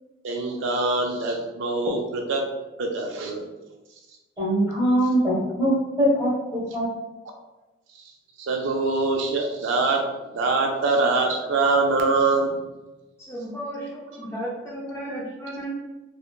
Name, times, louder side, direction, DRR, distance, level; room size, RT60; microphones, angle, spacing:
voice 1, 0.2-2.4 2.8-3.4 8.4-10.0 10.3-12.6, right 3 dB, 70° right, 2 dB, 0.3 m, -23 dB
voice 2, 4.4-5.7 6.0-6.9, equal, 20° right, -7 dB, 1.0 m, -22 dB
voice 3, 13.2-15.7, right 1 dB, 15° left, -6 dB, 0.3 m, -34 dB
3.0 x 2.0 x 2.2 m, 1.1 s
head